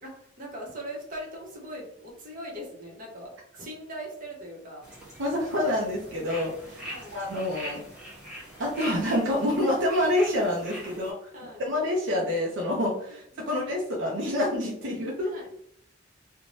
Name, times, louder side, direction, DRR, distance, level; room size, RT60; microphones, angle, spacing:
voice 1, 0.0-4.9 6.9-7.2 10.7-11.0 11.3-11.6 13.1-13.5 15.2-15.6, right 1 dB, 45° right, -2 dB, 0.8 m, -41 dB
sound 1, 4.8-11.1, equal, 5° right, 0.8 m, -43 dB
voice 2, 5.2-6.8 7.1-7.8 8.6-11.1 11.6-15.3, left 1 dB, 70° right, -2 dB, 0.5 m, -27 dB
2.6 x 2.1 x 3.0 m, 0.69 s
head